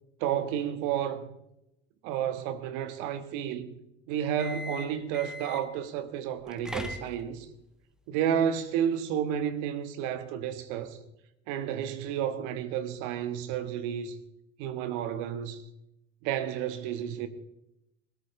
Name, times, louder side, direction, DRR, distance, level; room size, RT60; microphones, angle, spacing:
voice 1, 0.2-1.3 2.0-3.8 4.1-7.5 8.1-11.0 11.5-14.2 14.6-15.6 16.2-17.3, right 9 dB, 55° right, 1.6 m, -31 dB
sound 1, 4.3-5.8 6.4-7.5, left 1 dB, ahead, 1.4 m, -40 dB
20.5 x 13.5 x 3.3 m
figure-of-eight pair, 70°, 36 cm